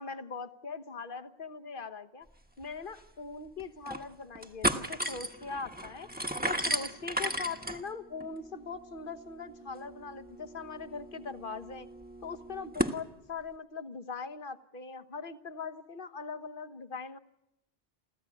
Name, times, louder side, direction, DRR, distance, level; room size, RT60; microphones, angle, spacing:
voice 1, 0.0-2.3 2.6-6.1 6.5-11.9 12.2-17.2, left 4 dB, 55° left, 10 dB, 1.4 m, -41 dB
sound 1, 2.6-2.7 3.0-3.1 3.6-4.1 4.4-13.0, right 1 dB, 10° right, 1.3 m, -36 dB
28.5 x 15.0 x 9.9 m, 0.89 s
omnidirectional pair, 1.1 m